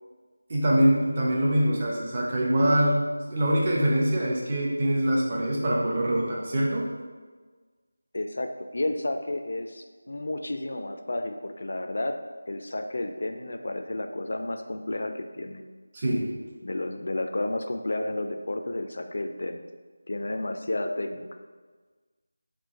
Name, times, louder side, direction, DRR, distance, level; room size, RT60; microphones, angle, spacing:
voice 1, 0.5-6.9 15.9-16.3, right 1 dB, 30° right, -3 dB, 0.7 m, -24 dB
voice 2, 8.1-12.2 12.5-15.6 16.6-19.6 20.1-21.3, left 2 dB, 55° left, 6 dB, 0.3 m, -31 dB
3.7 x 2.4 x 4.3 m, 1.4 s
figure-of-eight pair, 165°, 0 cm